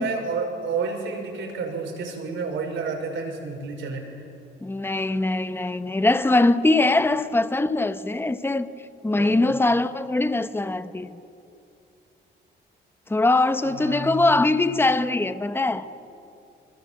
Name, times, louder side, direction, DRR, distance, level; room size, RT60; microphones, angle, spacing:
voice 1, 0.0-4.2 9.2-9.5 13.6-14.4, right 4 dB, 75° right, 5.7 m, -30 dB
voice 2, 4.6-8.7 9.0-11.2 13.1-15.9, left 2 dB, 10° left, 1.0 m, -22 dB
26.0 x 22.0 x 7.7 m
cardioid pair, 90°, 20 cm